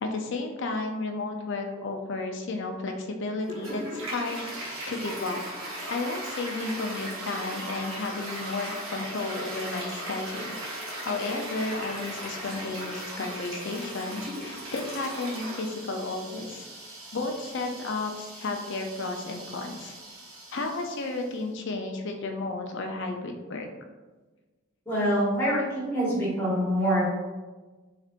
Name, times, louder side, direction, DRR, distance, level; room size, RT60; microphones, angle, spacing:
voice 1, 0.0-5.4 5.9-10.5 11.0-16.7 17.1-19.9 20.5-23.7, left 3 dB, 55° left, 3 dB, 0.5 m, -33 dB
Toilet flush, 3.4-21.4, right 1 dB, 70° right, 1.2 m, -38 dB
voice 2, 24.9-27.0, equal, 10° left, -9 dB, 1.4 m, -25 dB
4.2 x 3.3 x 2.5 m, 1.2 s
head